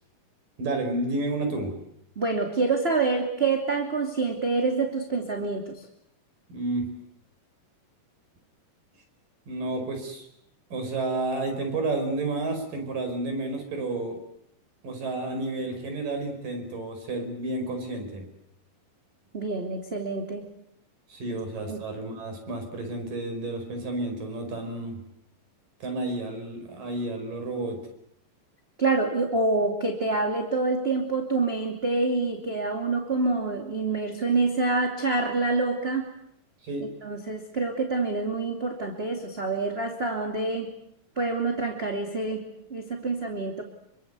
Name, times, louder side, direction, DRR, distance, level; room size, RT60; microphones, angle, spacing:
voice 1, 0.6-1.7 6.5-6.9 9.5-10.3 10.7-14.2 14.8-18.2 21.1-25.0 25.8-27.8 36.6-36.9, right 2 dB, 70° right, 5 dB, 6.9 m, -31 dB
voice 2, 2.2-5.9 19.3-20.4 21.7-21.8 28.8-36.1 36.8-40.8 41.2-42.4 42.7-43.6, right 3 dB, 20° right, 3 dB, 2.4 m, -27 dB
27.0 x 24.5 x 8.3 m, 0.76 s
omnidirectional pair, 4.0 m